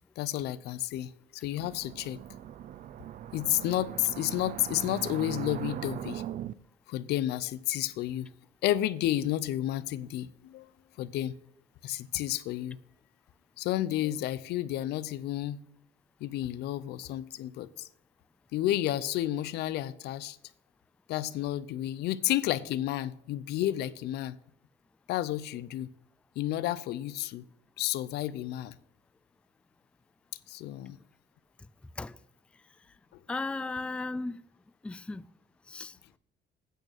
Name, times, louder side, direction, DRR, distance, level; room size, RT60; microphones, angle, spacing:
voice 1, 0.2-2.2 3.3-6.2 6.9-8.3 8.6-10.7 11.0-11.3 11.8-12.8 13.6-15.6 16.2-17.9 18.5-20.4 21.1-24.3 25.1-25.9 26.4-27.4 27.8-28.8 30.5-31.0, left 13 dB, 80° left, 0.6 m, -31 dB
sound 1, 1.6-6.5, right 11 dB, 55° right, 0.5 m, -40 dB
voice 2, 33.3-34.4 34.8-35.3 35.7-36.0, left 3 dB, 5° left, 0.3 m, -35 dB
9.0 x 6.5 x 6.5 m
cardioid pair, 110°, 17 cm